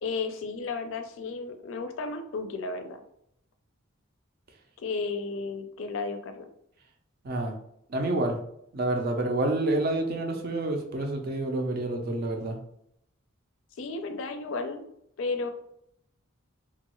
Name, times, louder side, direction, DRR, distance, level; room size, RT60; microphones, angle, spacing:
voice 1, 0.0-3.0 4.8-6.5 13.8-14.8 15.2-15.5, left 4 dB, 65° left, 7 dB, 0.4 m, -33 dB
voice 2, 7.9-8.4 8.7-12.6, right 2 dB, 50° right, 4 dB, 0.5 m, -28 dB
2.9 x 2.3 x 2.9 m, 0.74 s
head